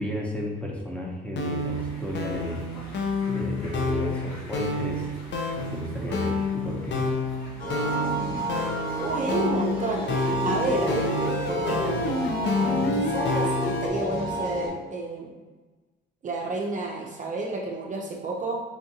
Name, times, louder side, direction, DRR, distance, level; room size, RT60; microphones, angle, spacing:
voice 1, 0.0-2.7 3.3-5.1 5.6-7.1, equal, 5° left, -2 dB, 0.8 m, -33 dB
sound 1, 1.3-13.9, left 2 dB, 60° left, 0.6 m, -29 dB
sound 2, 1.6-12.3, equal, 85° left, 1.2 m, -44 dB
sound 3, 7.6-14.7, right 1 dB, 45° left, 1.3 m, -31 dB
voice 2, 9.0-10.1 10.4-12.2 12.9-13.5 13.8-15.3 16.2-18.6, right 2 dB, 40° right, -1 dB, 0.5 m, -30 dB
4.6 x 2.5 x 2.8 m, 1.2 s
cardioid pair, 90°, 20 cm